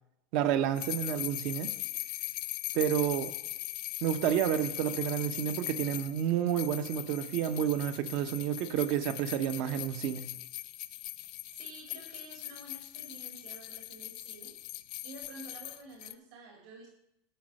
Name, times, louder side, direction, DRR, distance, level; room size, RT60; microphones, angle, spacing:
voice 1, 0.3-1.7 2.7-3.3 4.0-10.3, right 10 dB, 60° right, 10 dB, 0.8 m, -30 dB
sound 1, 0.7-16.1, left 17 dB, 60° left, 0.4 m, -40 dB
voice 2, 11.5-14.6 15.0-16.9, right 2 dB, 75° right, 0 dB, 2.1 m, -50 dB
10.5 x 4.0 x 6.3 m, 0.82 s
hypercardioid pair, 105°, 0 cm